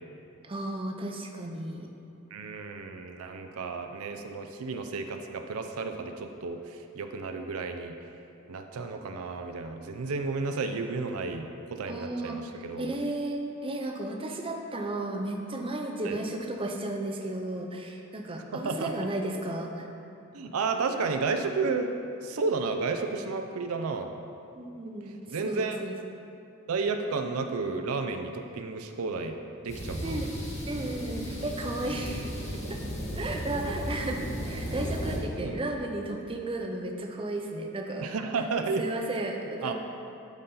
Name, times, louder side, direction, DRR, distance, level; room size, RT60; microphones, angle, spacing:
voice 1, 0.4-1.9 11.9-12.4 12.8-19.9 24.5-26.0 30.0-30.3 30.7-32.3 32.6-32.8 33.1-38.1 38.8-39.7, right 1 dB, 25° right, 2 dB, 0.6 m, -34 dB
voice 2, 2.3-7.9 8.5-12.9 16.0-16.2 18.5-19.1 20.3-21.9 22.2-24.1 25.3-25.8 26.7-30.2 35.4-35.7 38.0-38.8 39.6-39.7, right 4 dB, 85° right, 6 dB, 0.5 m, -32 dB
sound 1, 29.7-35.2, equal, 35° left, 1.9 m, -35 dB
11.5 x 4.1 x 3.8 m, 2.7 s
head